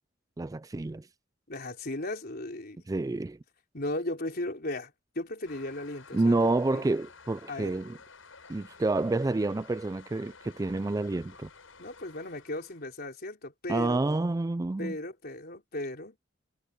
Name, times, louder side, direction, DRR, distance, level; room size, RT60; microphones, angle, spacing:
voice 1, 0.4-1.1 2.9-3.4 6.1-8.0 8.5-11.5 13.7-15.0, right 2 dB, 20° right, 0.4 m, -28 dB
voice 2, 1.5-2.8 3.7-6.8 7.5-7.7 11.8-14.0 14.8-16.2, left 1 dB, 50° left, 3.9 m, -36 dB
Toilet flush, 5.4-12.9, left 5 dB, 90° left, 7.8 m, -53 dB
head